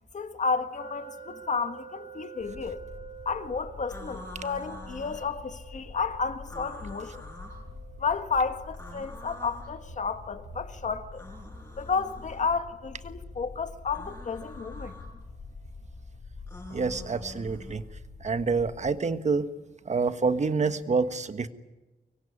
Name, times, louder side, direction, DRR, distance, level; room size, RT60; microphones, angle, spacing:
voice 1, 0.1-2.8 3.2-7.2 8.0-11.2 11.8-15.0, left 5 dB, 45° left, 1.6 m, -32 dB
sound 1, 0.8-13.7, right 7 dB, 25° right, 4.9 m, -50 dB
sound 2, 2.4-18.9, left 3 dB, 85° left, 5.4 m, -45 dB
sound 3, 3.9-5.3 6.4-7.6 8.7-9.7 11.1-12.5 13.9-15.1 16.5-17.8, left 1 dB, 15° left, 7.2 m, -46 dB
voice 2, 16.7-17.8 18.2-19.5 19.8-21.5, right 4 dB, 45° right, 1.4 m, -27 dB
25.0 x 22.5 x 9.9 m
wide cardioid pair, 140°, 17 cm